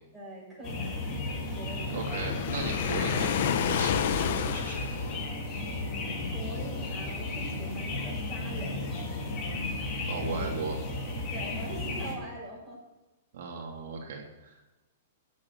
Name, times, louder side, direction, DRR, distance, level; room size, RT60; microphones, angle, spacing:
voice 1, 0.1-1.2 1.5-2.1 6.2-8.8 11.3-12.8, right 1 dB, 5° right, -6 dB, 7.2 m, -43 dB
sound 1, 0.6-12.1, left 2 dB, 25° left, 3.7 m, -34 dB
Waves surf, 1.9-5.4, left 9 dB, 50° left, 1.2 m, -30 dB
voice 2, 1.9-4.9 10.1-10.8 13.3-14.6, right 4 dB, 65° right, 0 dB, 3.1 m, -37 dB
16.0 x 8.5 x 8.1 m, 1.1 s
hypercardioid pair, 160°, 0 cm